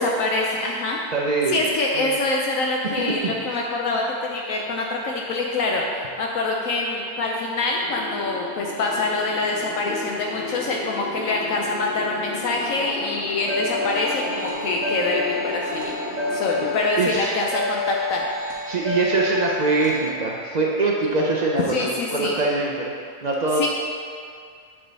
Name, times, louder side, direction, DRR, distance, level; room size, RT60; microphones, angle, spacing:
voice 1, 0.0-1.0 1.5-15.9 16.3-18.2 21.7-22.4 23.6-23.7, left 2 dB, 75° left, -1 dB, 1.0 m, -25 dB
voice 2, 1.1-1.6 1.9-2.2 3.2-3.3 16.6-16.7 17.0-17.3 18.7-22.9 23.2-23.7, right 3 dB, 45° right, -3 dB, 0.5 m, -23 dB
sound 1, 7.8-16.8, left 3 dB, 45° left, 0.7 m, -34 dB
sound 2, 13.4-20.1, left 2 dB, 65° right, 1.4 m, -29 dB
7.8 x 3.8 x 4.0 m, 2.2 s
omnidirectional pair, 1.5 m